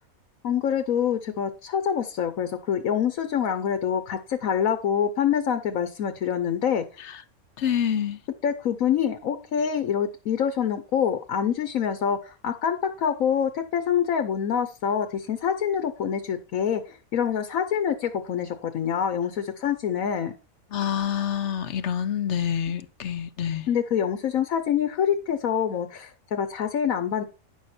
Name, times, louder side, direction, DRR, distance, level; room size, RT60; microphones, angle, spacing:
voice 1, 0.4-6.8 8.4-20.3 23.7-27.2, left 8 dB, 80° left, 1.3 m, -26 dB
voice 2, 7.6-8.2 20.7-23.7, left 9 dB, 60° left, 1.0 m, -27 dB
10.0 x 6.5 x 4.3 m
omnidirectional pair, 1.4 m